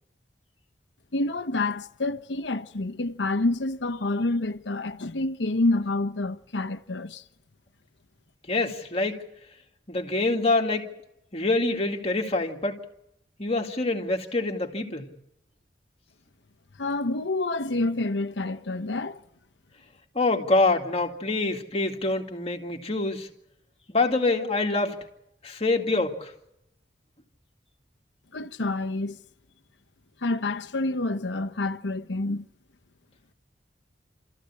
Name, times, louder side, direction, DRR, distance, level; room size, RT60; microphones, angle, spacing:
voice 1, 1.1-7.2 16.8-19.2 28.3-29.2 30.2-32.5, left 2 dB, 80° left, 1.0 m, -28 dB
voice 2, 8.5-9.2 9.9-10.9 11.3-12.8 13.4-15.1 20.1-23.3 23.9-25.1 25.4-26.3, left 2 dB, 35° left, 2.3 m, -25 dB
27.5 x 14.5 x 8.5 m
head